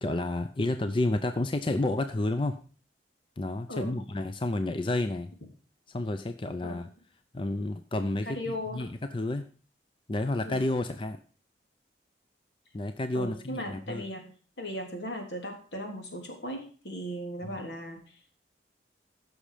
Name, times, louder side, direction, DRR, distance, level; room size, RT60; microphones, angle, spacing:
voice 1, 0.0-2.6 3.4-5.3 5.9-6.9 7.3-9.5 10.1-11.2 12.7-14.0 17.4-17.5, left 2 dB, 30° left, 8 dB, 0.6 m, -30 dB
voice 2, 8.3-8.9 10.5-10.6 13.1-14.3 14.6-18.2, equal, 75° left, 2 dB, 3.5 m, -37 dB
15.5 x 6.3 x 5.1 m, 0.40 s
head